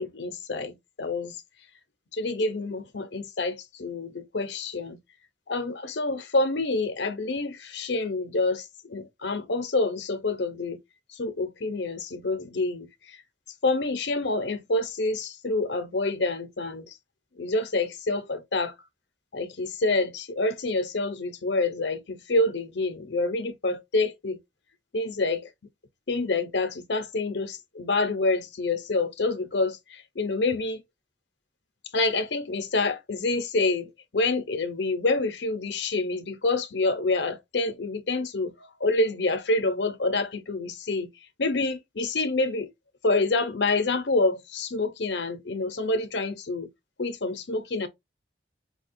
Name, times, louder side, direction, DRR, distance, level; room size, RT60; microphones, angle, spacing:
voice 1, 0.0-1.4 2.1-5.0 5.5-10.8 11.2-12.9 13.6-16.9 17.4-18.7 19.3-24.4 24.9-25.5 26.1-30.8 31.9-38.5 38.8-41.1 41.4-42.7 43.0-46.7 47.0-47.9, left 2 dB, 70° left, 0.7 m, -27 dB
4.9 x 2.3 x 2.6 m
head